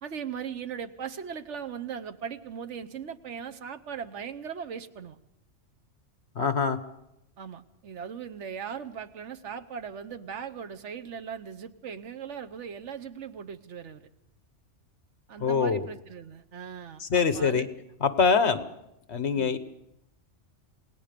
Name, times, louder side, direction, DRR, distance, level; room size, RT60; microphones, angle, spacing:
voice 1, 0.0-5.2 7.4-14.1 15.3-17.7 19.3-19.6, right 7 dB, 75° right, 9 dB, 1.2 m, -39 dB
voice 2, 6.3-6.8 15.4-15.9 17.0-17.7 18.0-18.6 19.1-19.6, left 5 dB, 65° left, 11 dB, 1.4 m, -24 dB
27.5 x 18.5 x 5.2 m, 0.82 s
omnidirectional pair, 1.3 m